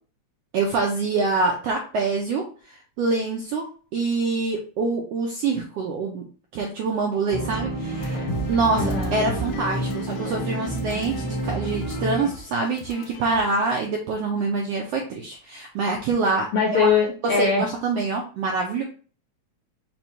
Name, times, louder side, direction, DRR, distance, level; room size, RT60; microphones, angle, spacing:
voice 1, 0.5-3.6 3.9-6.2 6.5-16.5 16.7-16.9 17.4-18.8, right 3 dB, 85° right, 0 dB, 1.4 m, -25 dB
sound 1, 7.3-12.3, right 2 dB, 15° left, 0.6 m, -29 dB
sound 2, 8.0-13.6, left 2 dB, 85° left, 2.4 m, -36 dB
voice 2, 8.8-9.2 16.5-17.6, left 5 dB, 65° left, -2 dB, 1.4 m, -21 dB
5.3 x 2.3 x 4.4 m, 0.40 s
omnidirectional pair, 3.5 m